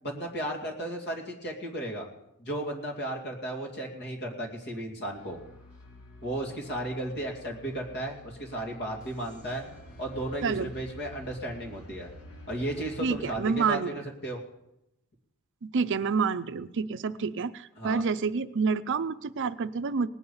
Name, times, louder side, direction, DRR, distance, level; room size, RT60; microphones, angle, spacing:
voice 1, 0.0-2.1 2.4-5.4 6.2-9.6 10.0-12.1 12.5-14.4 17.8-18.0, right 1 dB, 50° left, 0 dB, 2.5 m, -34 dB
sound 1, 5.1-13.4, left 1 dB, 80° left, 2.6 m, -49 dB
voice 2, 13.0-13.9 15.6-20.1, right 5 dB, 55° right, 13 dB, 0.5 m, -28 dB
19.0 x 8.4 x 5.6 m, 0.87 s
head